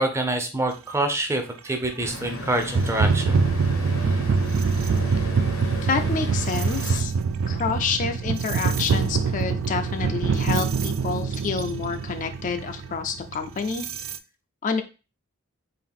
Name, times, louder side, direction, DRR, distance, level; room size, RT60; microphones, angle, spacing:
voice 1, 0.0-3.3, right 1 dB, 15° right, 5 dB, 0.6 m, -26 dB
sound 1, 1.6-1.7 2.6-14.2, right 5 dB, 65° right, 0.3 m, -25 dB
Traffic noise roadway noise, 2.0-7.0, left 1 dB, 75° left, 0.9 m, -35 dB
voice 2, 5.8-7.1 7.5-13.9 14.6-14.8, left 5 dB, 40° left, 8 dB, 0.4 m, -28 dB
3.7 x 2.5 x 3.5 m, 0.32 s
head